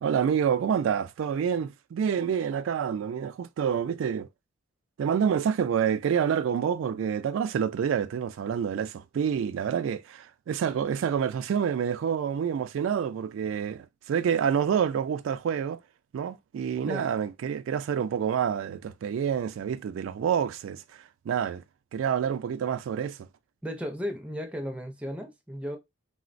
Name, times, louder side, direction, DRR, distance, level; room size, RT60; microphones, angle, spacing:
voice 1, 0.0-4.3 5.0-15.8 16.1-21.6 21.9-23.2, right 7 dB, 80° right, 0.3 m, -28 dB
voice 2, 23.6-25.8, equal, 5° right, 0.4 m, -35 dB
3.7 x 2.1 x 2.5 m
head